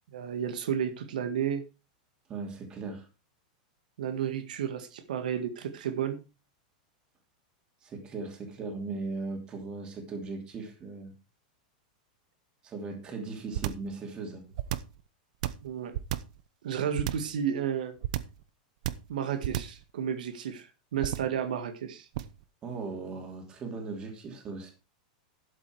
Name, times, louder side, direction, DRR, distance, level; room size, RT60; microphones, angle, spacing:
voice 1, 0.1-1.6 4.0-6.2 15.6-16.0 16.6-18.0 19.1-20.7 20.9-22.1, right 8 dB, 90° right, 9 dB, 1.8 m, -32 dB
voice 2, 2.3-3.1 7.8-11.1 12.6-14.6 22.6-24.7, right 3 dB, 20° right, 4 dB, 2.9 m, -38 dB
sound 1, 13.5-13.9 14.5-15.0 15.4-16.4 17.0-17.4 18.0-18.4 18.8-19.1 19.4-19.8 21.0-21.4 22.1-22.4, right 13 dB, 55° right, 0.9 m, -32 dB
11.5 x 8.0 x 4.6 m, 0.29 s
supercardioid pair, 165°, 4 cm